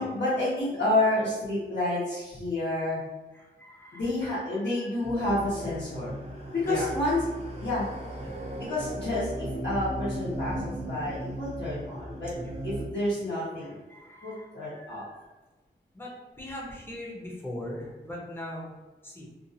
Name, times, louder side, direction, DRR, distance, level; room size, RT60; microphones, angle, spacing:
voice 1, 0.0-3.0 3.9-6.1 6.5-7.2 7.6-7.9 8.5-12.3 12.6-13.8 14.2-15.0, left 1 dB, 70° left, -13 dB, 1.1 m, -29 dB
voice 2, 3.3-4.1 4.5-5.1 6.6-6.9 8.2-8.4 12.3-12.5 13.6-15.4 15.9-18.7 19.0-19.3, left 1 dB, 10° left, -4 dB, 0.8 m, -40 dB
sound 1, 5.0-12.9, right 1 dB, 35° right, 0.6 m, -37 dB
2.6 x 2.4 x 2.7 m, 1.2 s
wide cardioid pair, 90°, 19 cm